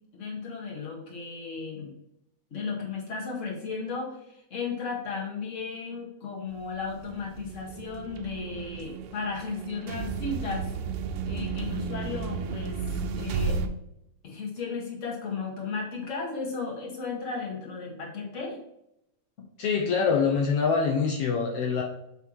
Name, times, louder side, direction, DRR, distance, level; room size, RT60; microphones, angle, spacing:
voice 1, 0.1-1.9 2.5-10.7 11.2-12.8 13.1-13.6 14.2-18.6, left 4 dB, 30° left, -2 dB, 1.5 m, -35 dB
sound 1, 6.6-13.7, right 5 dB, 85° right, 2.2 m, -33 dB
voice 2, 19.6-21.8, left 5 dB, 85° left, 1 dB, 1.3 m, -24 dB
8.0 x 3.5 x 4.5 m, 0.81 s
omnidirectional pair, 3.8 m